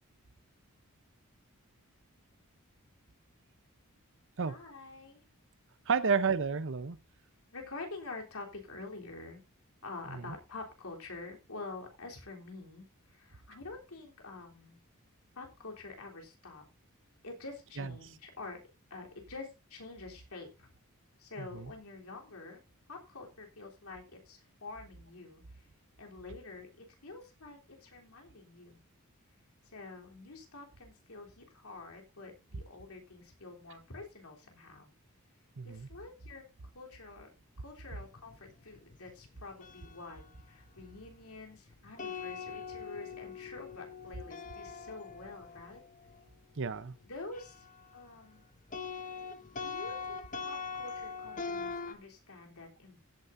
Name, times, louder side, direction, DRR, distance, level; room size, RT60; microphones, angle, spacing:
voice 1, 4.5-5.2 5.9-6.2 7.5-9.4 9.8-14.8 15.4-16.6 17.2-18.6 18.9-20.7 21.2-22.6 22.9-25.7 26.0-28.8 29.7-34.9 35.7-36.4 36.7-37.3 37.6-45.8 47.0-47.7 47.9-48.5 49.6-53.0, left 3 dB, 80° left, 3.5 m, -47 dB
voice 2, 5.9-7.0 10.1-10.3 17.8-17.9 21.4-21.7 35.6-35.9 46.6-46.9, right 5 dB, 60° right, 0.8 m, -31 dB
sound 1, 38.0-48.1 48.4-52.0, left 5 dB, 35° left, 0.9 m, -43 dB
16.0 x 9.2 x 2.6 m
head